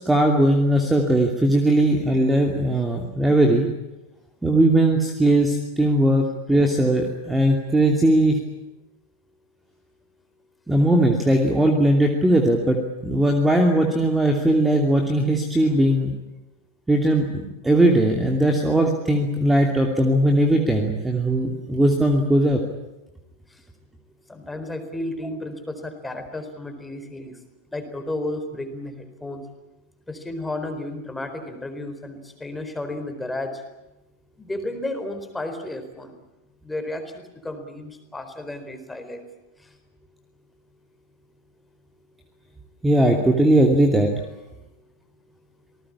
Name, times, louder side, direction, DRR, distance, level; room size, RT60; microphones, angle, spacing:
voice 1, 0.0-3.7 4.4-8.4 10.7-16.1 16.9-22.6 42.8-44.1, right 1 dB, 10° right, 3 dB, 2.8 m, -19 dB
voice 2, 24.3-27.4 27.7-29.4 30.1-33.6 34.4-36.1 36.6-39.2, left 1 dB, 10° left, 7 dB, 4.3 m, -32 dB
27.0 x 20.0 x 8.7 m, 1.0 s
figure-of-eight pair, 90°, 0 cm